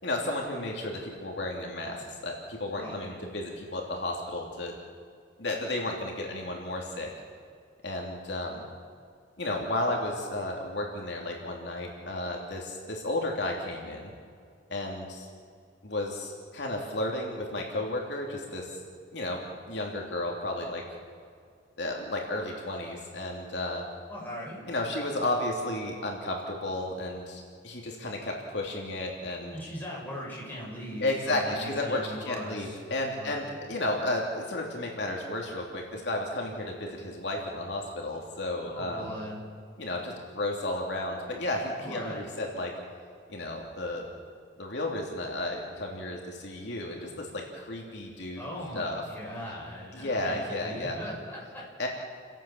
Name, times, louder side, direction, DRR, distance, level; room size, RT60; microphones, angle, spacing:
voice 1, 0.0-2.0 2.2-4.7 5.4-7.1 7.8-8.6 9.4-14.1 14.7-15.3 15.8-18.7 19.1-20.8 21.8-23.8 24.7-29.5 31.0-39.1 39.8-42.7 43.3-44.1 44.6-48.4 48.7-49.0 49.9-51.0 51.8-51.9, left 1 dB, 65° left, 0 dB, 3.1 m, -33 dB
voice 2, 2.7-3.2 24.1-24.6 29.5-32.8 33.2-33.5 38.7-39.4 41.8-42.2 48.4-51.6, equal, 10° left, -5 dB, 7.0 m, -39 dB
29.5 x 17.0 x 7.3 m, 2.2 s
head